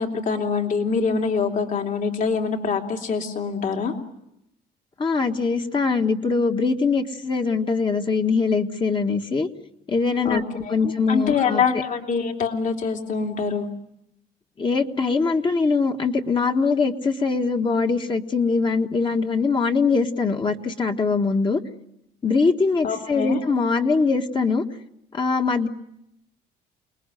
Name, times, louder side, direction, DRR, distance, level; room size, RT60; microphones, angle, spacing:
voice 1, 0.0-3.9 10.2-13.7 22.8-23.4, left 5 dB, 50° left, 3 dB, 3.0 m, -25 dB
voice 2, 5.0-9.5 9.9-11.6 14.6-21.6 22.2-24.6 25.1-25.7, left 4 dB, 30° left, 4 dB, 1.6 m, -22 dB
29.0 x 20.0 x 9.2 m, 0.84 s
cardioid pair, 110°, 17 cm